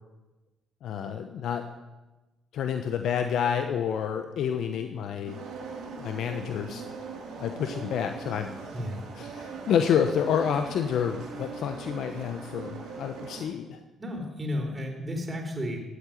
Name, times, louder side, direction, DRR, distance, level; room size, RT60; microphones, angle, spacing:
voice 1, 0.8-1.7 2.5-5.5 6.0-6.8 7.4-8.5 9.1-13.8, left 8 dB, 70° left, 6 dB, 1.0 m, -29 dB
sound 1, 5.3-13.4, right 4 dB, 75° right, 6.1 m, -40 dB
voice 2, 14.0-15.8, left 1 dB, 30° right, 1 dB, 4.4 m, -33 dB
14.5 x 8.4 x 9.5 m, 1.1 s
supercardioid pair, 60°, 0 cm